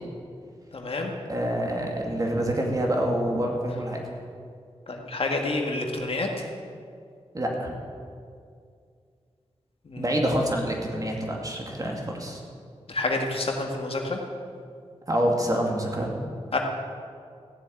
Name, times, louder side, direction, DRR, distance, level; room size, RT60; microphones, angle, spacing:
voice 1, 0.7-1.1 4.9-6.5 9.9-10.1 12.9-14.2 16.5-16.6, left 2 dB, 60° left, 1 dB, 1.9 m, -28 dB
voice 2, 1.3-4.0 7.3-7.7 10.0-12.4 15.1-16.1, equal, 35° right, 0 dB, 2.5 m, -26 dB
15.0 x 7.5 x 9.0 m, 2.3 s
wide cardioid pair, 85°, 11 cm